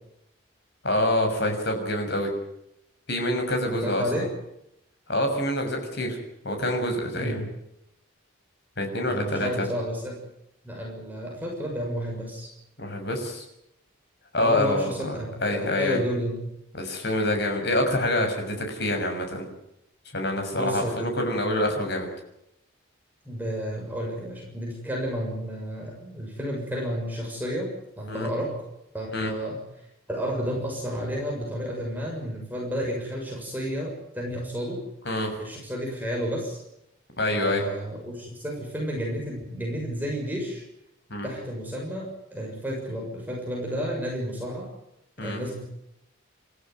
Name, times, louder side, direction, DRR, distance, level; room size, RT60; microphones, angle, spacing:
voice 1, 0.8-2.3 3.1-4.3 5.1-6.2 6.4-7.4 8.8-9.7 12.8-13.4 14.3-15.1 15.4-16.0 16.7-19.4 20.1-22.1 28.1-28.3 29.1-29.3 35.0-35.3 37.2-37.6 41.1-41.3 45.2-45.4, left 1 dB, 55° left, 4 dB, 6.7 m, -26 dB
voice 2, 3.6-4.3 7.1-7.4 9.1-10.2 10.6-12.5 14.4-16.5 20.5-21.1 23.2-27.7 28.0-28.5 28.9-34.8 35.4-36.6 37.3-40.6 41.2-44.7 45.2-45.7, equal, 10° right, -1 dB, 6.8 m, -31 dB
29.0 x 14.0 x 9.6 m, 0.80 s
head